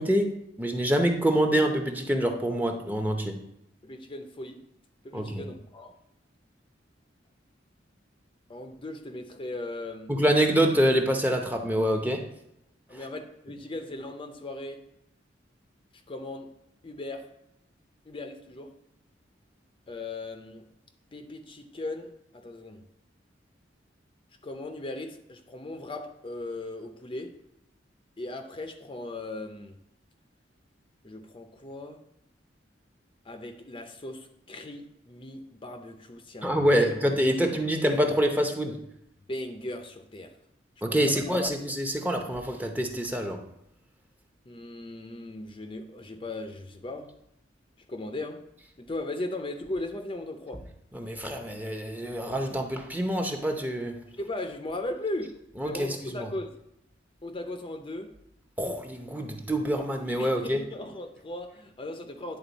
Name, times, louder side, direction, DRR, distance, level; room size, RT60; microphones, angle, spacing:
voice 1, 0.0-3.4 5.1-5.5 10.1-12.3 12.9-13.0 36.4-38.8 40.8-43.4 50.9-54.0 55.6-56.3 58.6-60.6, equal, 10° right, 4 dB, 0.7 m, -26 dB
voice 2, 3.8-4.6 5.0-5.9 8.5-10.1 12.9-14.8 16.1-16.5 16.8-17.3 18.1-18.7 19.9-20.7 21.1-22.8 24.4-27.3 28.2-29.8 31.0-32.0 33.2-36.9 39.3-40.3 40.9-41.3 44.5-47.1 47.9-48.4 48.8-50.6 54.2-55.4 55.6-56.6 57.2-58.1 60.2-62.4, left 2 dB, 30° left, 5 dB, 0.6 m, -38 dB
9.8 x 3.9 x 4.0 m, 0.78 s
head